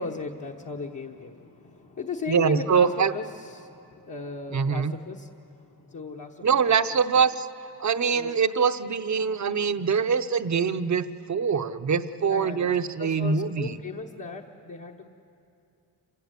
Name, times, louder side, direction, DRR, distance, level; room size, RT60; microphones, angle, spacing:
voice 1, 0.0-6.7 8.1-8.3 12.2-15.1, left 4 dB, 50° left, -1 dB, 1.1 m, -37 dB
voice 2, 2.3-3.1 4.5-4.9 6.4-7.5 7.8-13.7, right 6 dB, 45° right, 11 dB, 0.8 m, -24 dB
28.0 x 15.5 x 8.3 m, 2.7 s
wide cardioid pair, 110°, 40 cm